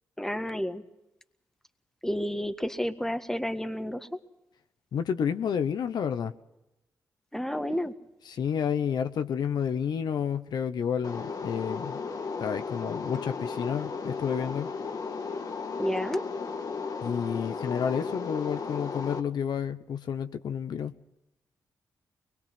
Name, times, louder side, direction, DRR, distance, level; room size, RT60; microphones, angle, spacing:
voice 1, 0.2-0.8 2.0-4.2 7.3-7.9 15.8-16.2, equal, 5° left, 8 dB, 1.7 m, -30 dB
voice 2, 4.9-6.3 8.3-12.0 12.4-14.7 17.0-20.9, left 7 dB, 75° left, 9 dB, 1.0 m, -30 dB
sound 1, 11.0-19.2, left 5 dB, 60° left, 1.7 m, -35 dB
23.0 x 21.0 x 5.9 m, 0.93 s
cardioid pair, 60°, 7 cm